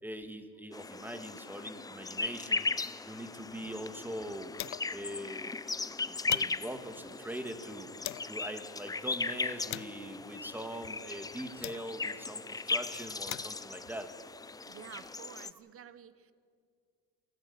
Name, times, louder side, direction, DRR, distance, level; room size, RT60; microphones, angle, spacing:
voice 1, 0.0-4.5 4.9-5.6 6.0-7.9 8.2-14.1, right 1 dB, 5° right, 8 dB, 1.8 m, -42 dB
sound 1, 0.7-15.5, left 3 dB, 10° left, 0.5 m, -38 dB
sound 2, 3.3-5.1 5.4-5.5 5.8-8.4 9.0-12.2 12.9-15.1, left 17 dB, 55° left, 0.6 m, -46 dB
voice 2, 14.7-16.3, right 9 dB, 45° right, 15 dB, 1.0 m, -50 dB
27.5 x 14.0 x 8.6 m, 2.2 s
cardioid pair, 115°, 32 cm